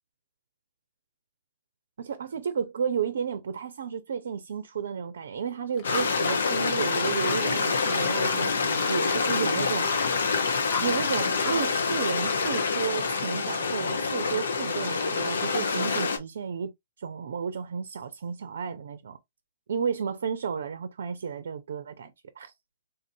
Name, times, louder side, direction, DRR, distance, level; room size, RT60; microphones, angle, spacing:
voice 1, 2.0-9.9 10.8-16.7 17.0-19.2 19.7-22.5, right 6 dB, 70° right, 0.5 m, -32 dB
Stream, 5.8-16.2, left 4 dB, 75° left, 0.9 m, -26 dB
sound 1, 5.8-11.6 11.9-12.8, left 4 dB, 35° left, 1.1 m, -39 dB
3.9 x 2.6 x 2.7 m
hypercardioid pair, 135°, 0 cm